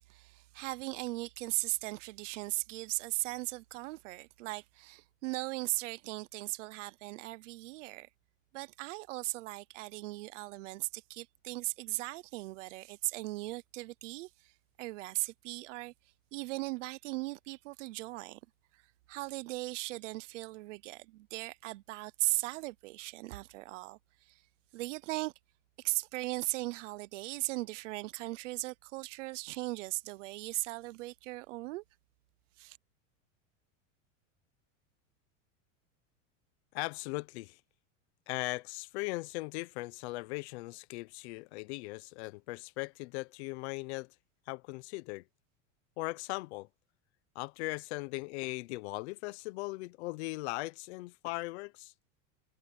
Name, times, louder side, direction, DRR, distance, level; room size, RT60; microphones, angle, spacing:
voice 1, 0.1-8.1 8.5-14.3 14.8-15.9 16.3-18.4 19.1-24.0 24.7-25.3 25.8-31.8 32.6-32.8, right 21 dB, 70° right, 0.8 m, -38 dB
voice 2, 36.7-37.6 38.3-44.1 44.5-45.2 46.0-46.7 47.3-51.9, left 23 dB, 55° left, 0.9 m, -39 dB
supercardioid pair, 160°, 38 cm